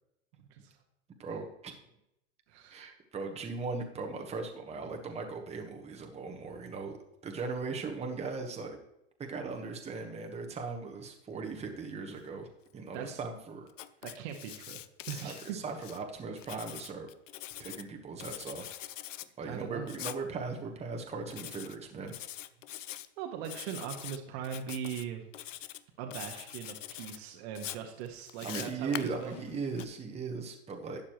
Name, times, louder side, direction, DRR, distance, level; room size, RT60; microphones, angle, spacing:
voice 1, 0.4-0.8 2.5-2.9 12.9-13.2 14.0-14.8 15.1-15.6 17.5-17.6 19.4-19.9 23.2-25.2 26.0-29.4, right 8 dB, 55° right, 3 dB, 1.6 m, -40 dB
voice 2, 1.2-1.8 2.7-7.0 7.2-8.8 9.2-13.7 15.1-17.1 17.6-18.7 19.4-22.2 28.4-31.0, right 4 dB, 15° right, 2 dB, 1.3 m, -38 dB
Writing, 13.7-16.0 16.4-17.9 18.2-19.3 19.9-20.2 21.3-21.8 22.1-23.1 23.4-24.2 24.4-25.0 25.3-25.8 26.1-27.2 27.6-29.8, left 13 dB, 80° left, 0.7 m, -44 dB
12.0 x 8.4 x 3.1 m, 0.82 s
hypercardioid pair, 115°, 37 cm